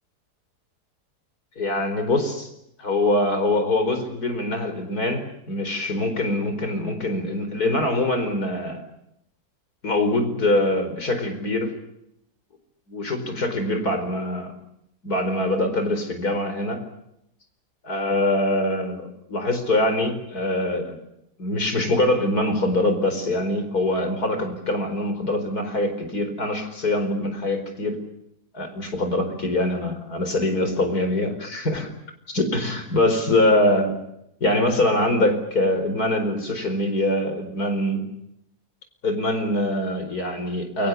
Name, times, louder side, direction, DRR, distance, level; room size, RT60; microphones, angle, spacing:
voice 1, 1.6-2.5 2.8-8.8 9.8-11.7 12.9-14.5 15.0-16.8 17.8-21.0 21.4-28.0 28.5-31.9 32.3-33.9 34.4-38.0 39.0-40.9, left 1 dB, 65° left, 7 dB, 5.2 m, -23 dB
29.0 x 24.0 x 6.9 m, 0.79 s
omnidirectional pair, 1.8 m